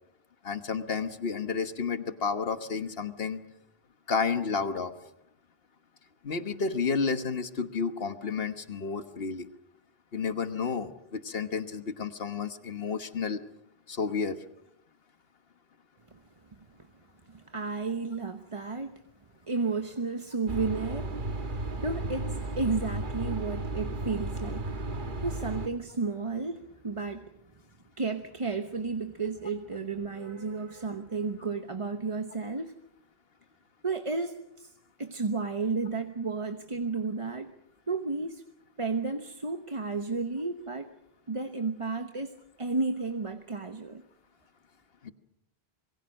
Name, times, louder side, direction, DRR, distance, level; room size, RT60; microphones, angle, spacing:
voice 1, 0.4-3.4 4.1-4.9 6.2-9.5 10.1-13.4 13.9-14.4 45.0-45.1, left 5 dB, 70° left, 1.6 m, -31 dB
voice 2, 17.3-19.0 19.5-27.3 28.0-32.7 33.8-34.7 35.0-37.5 37.9-38.4 38.8-40.9 41.3-44.0, right 4 dB, 30° right, 1.1 m, -33 dB
sound 1, 20.5-25.7, right 2 dB, 50° right, 1.6 m, -34 dB
26.5 x 22.5 x 6.5 m
omnidirectional pair, 1.0 m